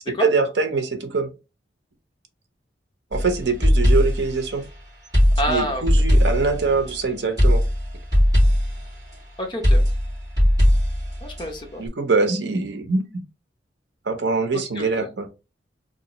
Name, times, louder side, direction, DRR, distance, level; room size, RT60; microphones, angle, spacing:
voice 1, 0.1-1.3 3.1-4.6 5.5-7.7 11.8-13.1 14.1-15.3, right 4 dB, 70° right, 0.8 m, -23 dB
sound 1, 3.1-4.3 5.1-6.9 7.4-8.8 9.6-11.4, equal, 20° right, 2.2 m, -18 dB
voice 2, 5.4-5.8 9.4-9.8 11.2-11.8 14.5-15.1, equal, 25° left, 0.8 m, -28 dB
3.7 x 2.9 x 2.9 m
head